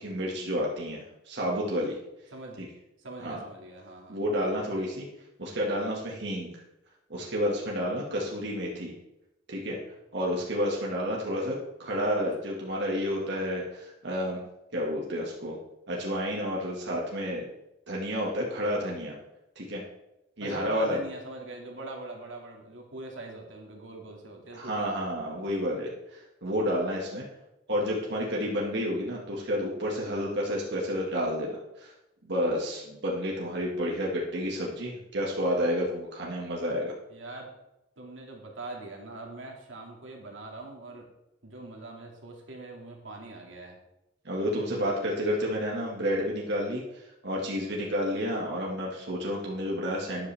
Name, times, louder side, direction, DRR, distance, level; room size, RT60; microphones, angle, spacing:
voice 1, 0.0-2.0 2.6-2.7 3.2-3.4 4.1-5.1 5.4-6.5 7.1-8.9 9.5-9.8 10.1-14.4 14.7-15.6 15.9-17.4 17.9-19.2 19.6-19.8 20.4-21.0 24.5-27.2 27.7-31.9 32.2-36.9 44.3-50.3, equal, 65° right, -3 dB, 2.0 m, -30 dB
voice 2, 2.3-2.6 3.0-4.2 20.4-25.0 37.1-37.5 38.0-41.1 41.4-43.8, right 2 dB, 85° right, 0 dB, 2.4 m, -42 dB
13.0 x 10.5 x 3.5 m, 0.90 s
head